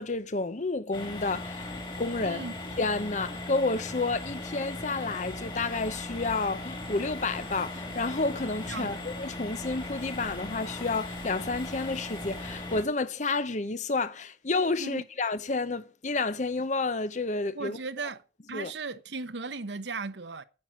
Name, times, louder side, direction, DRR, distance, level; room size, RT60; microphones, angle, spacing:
voice 1, 0.0-2.4 2.8-17.8 18.5-18.7, left 3 dB, 40° left, 0.8 m, -30 dB
sound 1, 0.9-12.8, left 2 dB, 25° left, 2.5 m, -38 dB
voice 2, 2.2-2.6 8.7-9.0 14.8-15.0 17.5-18.2 18.5-20.4, right 4 dB, 70° right, 0.9 m, -36 dB
sound 2, 5.5-12.0, left 1 dB, 75° left, 2.2 m, -51 dB
9.7 x 7.6 x 7.5 m
head